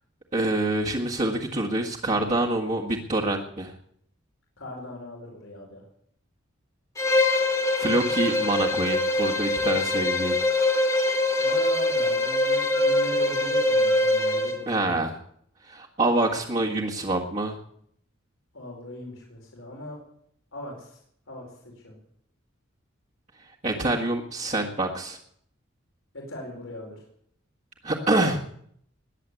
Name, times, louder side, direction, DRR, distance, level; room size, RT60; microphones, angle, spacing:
voice 1, 0.3-3.7 7.8-10.4 14.7-15.1 15.7-17.6 23.6-25.2 27.8-28.4, right 2 dB, 35° right, -4 dB, 1.7 m, -26 dB
voice 2, 4.6-5.9 11.3-15.1 18.5-20.0 20.5-21.0 21.3-22.0 26.1-27.0, left 1 dB, 85° left, -1 dB, 4.8 m, -40 dB
Bowed string instrument, 7.0-14.6, left 2 dB, 15° left, 1.7 m, -23 dB
20.5 x 7.9 x 8.3 m, 0.68 s
head